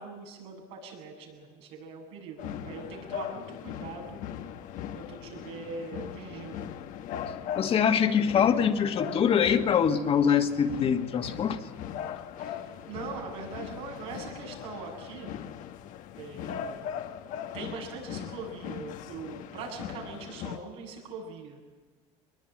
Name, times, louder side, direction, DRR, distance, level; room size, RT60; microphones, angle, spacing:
voice 1, 0.0-4.2 4.9-6.7 12.4-15.3 16.2-17.1 17.5-21.6, right 4 dB, 90° right, 0 dB, 7.8 m, -42 dB
sound 1, 2.4-20.6, left 9 dB, 65° left, 1.3 m, -39 dB
voice 2, 7.6-11.6, left 7 dB, 40° left, 6 dB, 1.8 m, -24 dB
23.0 x 21.0 x 9.0 m, 1.4 s
supercardioid pair, 115°, 15 cm